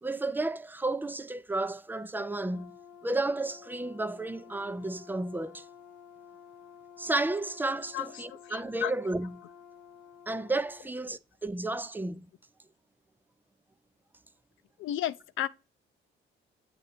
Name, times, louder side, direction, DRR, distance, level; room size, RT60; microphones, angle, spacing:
voice 1, 0.0-2.7 3.0-5.6 7.0-9.4 10.3-12.3, right 2 dB, 10° right, 0.5 m, -32 dB
Brass instrument, 2.4-10.9, left 8 dB, 65° left, 1.0 m, -52 dB
voice 2, 7.9-8.9 14.8-15.5, left 11 dB, 85° left, 0.6 m, -33 dB
7.9 x 2.8 x 4.8 m
cardioid pair, 90°, 20 cm